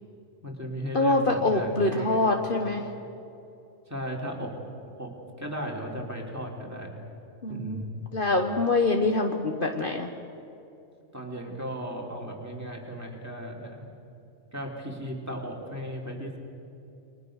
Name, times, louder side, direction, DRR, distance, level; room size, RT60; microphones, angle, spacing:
voice 1, 0.4-2.4 3.9-4.6 5.0-6.9 7.5-7.9 11.1-13.9 14.5-16.4, equal, 10° right, -1 dB, 3.7 m, -36 dB
voice 2, 0.9-2.8 7.4-7.8 8.1-10.1, left 2 dB, 45° left, 3 dB, 1.5 m, -25 dB
29.5 x 23.0 x 6.6 m, 2.7 s
omnidirectional pair, 1.3 m